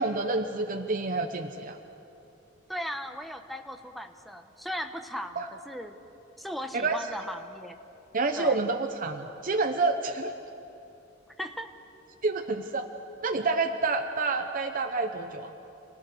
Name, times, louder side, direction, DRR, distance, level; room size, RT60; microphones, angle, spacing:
voice 1, 0.0-1.8 5.4-5.5 6.7-7.0 8.1-10.3 12.2-12.9 13.2-15.5, right 3 dB, 45° right, 6 dB, 0.8 m, -28 dB
voice 2, 2.7-6.0 6.4-7.8 8.4-8.6 11.4-11.7, equal, ahead, 6 dB, 1.0 m, -37 dB
27.5 x 17.5 x 6.6 m, 2.8 s
head